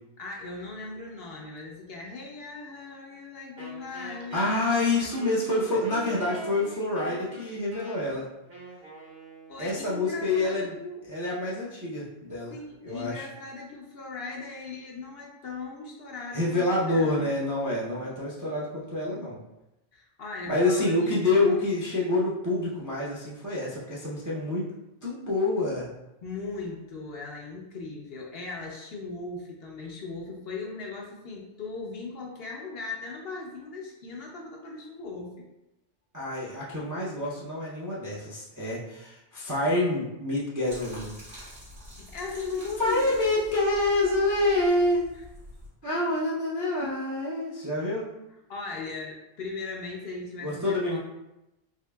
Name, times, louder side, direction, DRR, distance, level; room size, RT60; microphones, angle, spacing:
voice 1, 0.2-4.6 5.2-6.0 9.5-11.0 12.5-17.3 19.9-21.2 26.2-35.4 42.0-43.1 45.1-45.2 45.8-46.1 46.8-47.1 48.5-51.0, left 4 dB, 60° left, -1 dB, 0.7 m, -38 dB
Wind instrument woodwind instrument, 3.6-9.9, right 1 dB, 55° right, 1.2 m, -44 dB
voice 2, 3.9-8.3 9.6-10.7 11.1-12.5 12.8-13.3 16.3-19.4 20.5-24.6 25.0-25.9 36.1-41.1 42.8-45.1 45.8-48.1 50.4-51.0, left 2 dB, 25° right, -7 dB, 0.4 m, -27 dB
sound 1, 40.7-45.7, left 1 dB, 85° right, 1.7 m, -46 dB
3.7 x 3.3 x 2.2 m, 0.93 s
omnidirectional pair, 1.3 m